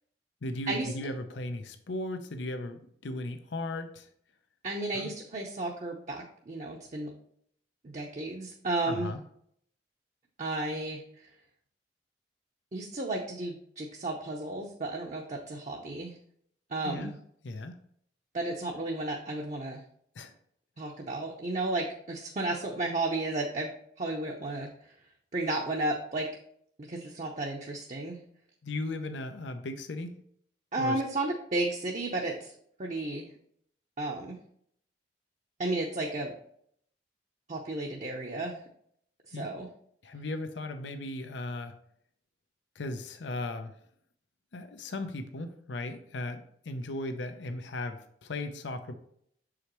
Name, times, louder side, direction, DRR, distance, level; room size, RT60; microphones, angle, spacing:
voice 1, 0.4-4.1 4.9-5.1 8.9-9.2 16.8-17.1 17.4-17.8 20.1-20.3 28.6-30.1 30.8-31.0 39.3-39.5 40.0-41.7 42.8-43.7 44.5-48.9, left 2 dB, 90° left, 8 dB, 0.7 m, -37 dB
voice 2, 4.6-7.1 7.8-9.1 10.4-11.0 12.7-16.2 16.7-17.1 18.3-19.8 20.8-23.7 24.0-24.7 25.3-26.3 26.9-28.2 30.7-32.5 32.8-33.3 34.0-34.4 35.6-36.3 37.5-38.6 39.3-39.7, right 2 dB, 40° right, 0 dB, 0.7 m, -33 dB
6.9 x 4.9 x 3.0 m, 0.67 s
head